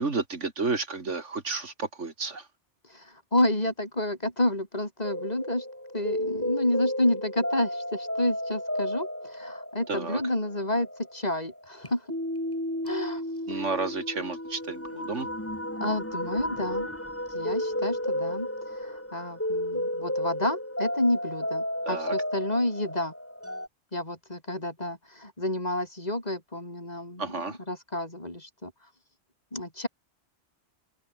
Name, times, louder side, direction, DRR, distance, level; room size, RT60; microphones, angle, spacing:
voice 1, 0.0-2.5 9.9-10.2 13.5-15.3 21.9-22.1 27.2-27.6, right 4 dB, 80° right, 2.9 m, -31 dB
voice 2, 2.9-5.6 5.9-12.0 12.8-13.2 13.5-13.6 15.8-16.9 17.3-18.5 18.7-23.1 23.9-28.7 29.5-29.9, left 1 dB, 35° left, 4.8 m, -30 dB
sound 1, 5.0-23.7, left 1 dB, 10° left, 3.4 m, -33 dB
open air
omnidirectional pair, 1.2 m